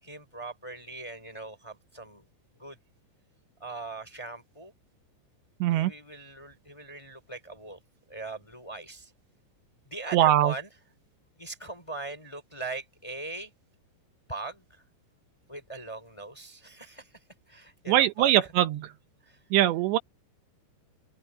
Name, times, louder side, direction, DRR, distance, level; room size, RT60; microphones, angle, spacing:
voice 1, 0.0-2.3 2.6-2.8 3.6-4.7 5.7-7.8 8.1-9.1 9.8-10.7 11.4-13.5 14.3-14.8 15.5-17.2 17.5-18.5 19.2-19.4, right 3 dB, 10° left, 2.9 m, -40 dB
voice 2, 5.6-5.9 10.1-10.5 17.9-18.9 19.5-20.0, right 13 dB, 80° right, 3.2 m, -22 dB
open air
omnidirectional pair, 5.1 m